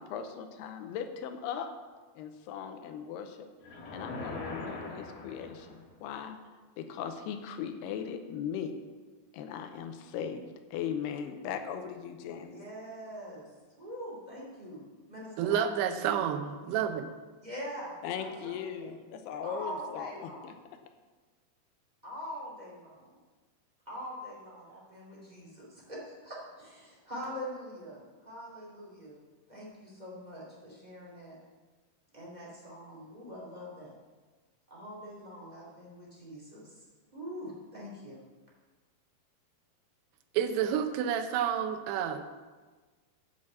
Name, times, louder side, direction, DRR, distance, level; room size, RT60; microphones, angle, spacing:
voice 1, 0.0-1.7 2.2-3.5 3.9-6.4 6.8-8.8 9.3-10.4 10.7-12.6 18.0-20.5, left 8 dB, 85° left, 7 dB, 2.7 m, -38 dB
sound 1, 3.6-6.0, left 2 dB, 65° left, 3.0 m, -41 dB
voice 2, 12.4-13.5 13.8-16.2 17.4-18.8 19.4-20.6 22.0-23.1 23.9-29.2 29.5-31.4 32.1-33.9 34.7-36.9 37.1-38.2, equal, 15° right, -5 dB, 1.9 m, -44 dB
voice 3, 15.4-17.1 40.3-42.4, right 8 dB, 90° right, 8 dB, 2.8 m, -30 dB
8.5 x 5.8 x 7.5 m, 1.3 s
omnidirectional pair, 4.5 m